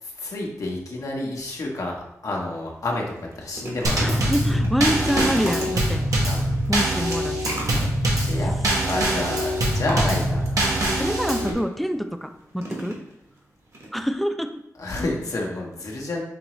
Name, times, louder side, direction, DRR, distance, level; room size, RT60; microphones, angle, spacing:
voice 1, 0.0-3.0 3.3-4.3 4.9-5.3 6.2-6.4 8.2-8.5 8.9-10.7 14.8-16.2, left 2 dB, 70° left, -1 dB, 1.0 m, -29 dB
sound 1, 2.5-2.7 3.1-11.9 12.6-13.4 13.7-13.9 14.1-14.2, right 1 dB, 55° right, 1.3 m, -36 dB
Drum kit / Snare drum / Bass drum, 3.8-11.5, right 1 dB, 75° right, 1.0 m, -23 dB
voice 2, 4.0-6.1 6.7-7.8 11.0-13.0 13.9-14.5, equal, ahead, 7 dB, 0.4 m, -26 dB
5.2 x 2.9 x 3.0 m, 0.83 s
wide cardioid pair, 75°, 6 cm